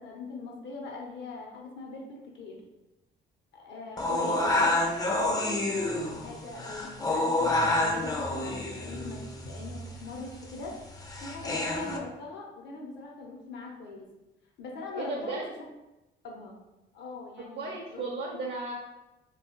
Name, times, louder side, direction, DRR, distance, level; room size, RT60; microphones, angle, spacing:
voice 1, 0.0-2.6 3.5-4.9 5.5-9.2 9.4-10.7 11.2-14.1 14.6-15.5 16.2-16.6 16.9-18.0, left 3 dB, 65° left, 0 dB, 0.7 m, -41 dB
sound 1, 4.0-12.0, left 2 dB, 20° left, 0.4 m, -29 dB
voice 2, 4.2-4.6 15.0-15.5 17.4-18.7, right 3 dB, 55° right, -1 dB, 0.5 m, -35 dB
2.7 x 2.3 x 2.9 m, 0.99 s
cardioid pair, 90°, 20 cm